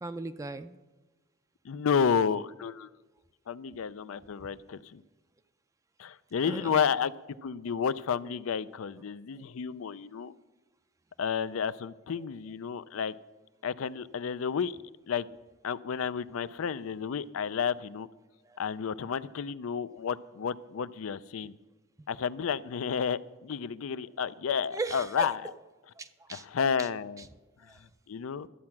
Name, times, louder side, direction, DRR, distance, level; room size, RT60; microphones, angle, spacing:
voice 1, 0.0-0.8 6.4-6.8 18.4-18.6 24.7-25.3 26.0-26.5 26.8-26.9 27.2-27.3 27.6-27.8, right 3 dB, 15° right, 10 dB, 0.4 m, -38 dB
voice 2, 1.6-2.9 3.5-5.0 6.0-7.1 7.4-10.3 11.2-13.2 13.6-14.8 15.1-15.3 15.6-18.1 18.6-21.6 22.1-25.5 26.3-27.3 28.1-28.5, left 6 dB, 85° left, 16 dB, 0.4 m, -31 dB
12.5 x 8.6 x 5.9 m, 1.2 s
head